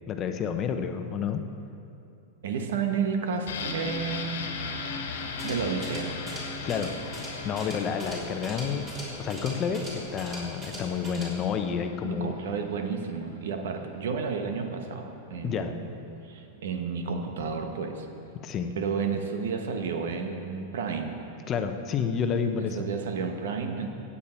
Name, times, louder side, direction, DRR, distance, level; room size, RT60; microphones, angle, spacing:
voice 1, 0.1-1.4 6.6-6.9 7.4-8.9 9.2-12.3 15.4-15.7 18.4-18.7 21.5-22.8, left 7 dB, 30° left, 7 dB, 0.8 m, -29 dB
voice 2, 2.4-4.4 5.4-6.2 12.0-15.9 16.2-18.1 18.7-21.2 22.6-23.9, right 5 dB, 80° right, 5 dB, 1.2 m, -31 dB
sound 1, 3.5-13.1 13.4-13.5, left 4 dB, 85° left, 1.4 m, -38 dB
sound 2, 5.2-11.4, equal, 20° right, 3.4 m, -41 dB
16.0 x 8.5 x 4.4 m, 2.7 s
supercardioid pair, 135°, 0 cm